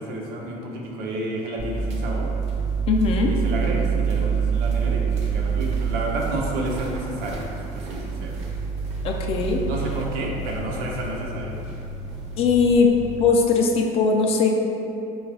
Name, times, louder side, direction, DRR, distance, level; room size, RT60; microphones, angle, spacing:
voice 1, 0.0-2.3 3.3-7.5 7.7-8.4 9.7-11.5, right 1 dB, 80° right, -2 dB, 0.8 m, -30 dB
sound 1, 1.6-13.2, right 6 dB, 45° right, 0.6 m, -27 dB
voice 2, 2.9-3.3 9.0-9.6 12.4-12.9 13.2-14.5, left 5 dB, 40° left, 1 dB, 0.4 m, -19 dB
4.1 x 2.3 x 4.6 m, 2.8 s
cardioid pair, 170°, 15 cm